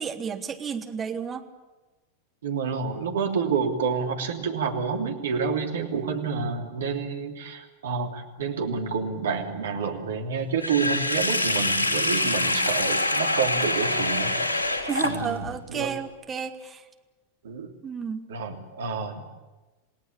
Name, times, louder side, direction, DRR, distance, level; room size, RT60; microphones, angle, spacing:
voice 1, 0.0-1.4 14.9-16.8 17.8-18.2, right 6 dB, 20° right, 6 dB, 1.9 m, -32 dB
voice 2, 2.4-14.6 15.0-15.9 17.4-17.7 18.3-19.2, right 5 dB, 65° right, 3 dB, 3.0 m, -29 dB
Sink (filling or washing), 10.6-15.5, left 2 dB, 75° left, 3.1 m, -25 dB
28.5 x 18.0 x 8.7 m, 1.1 s
figure-of-eight pair, 90°, 0 cm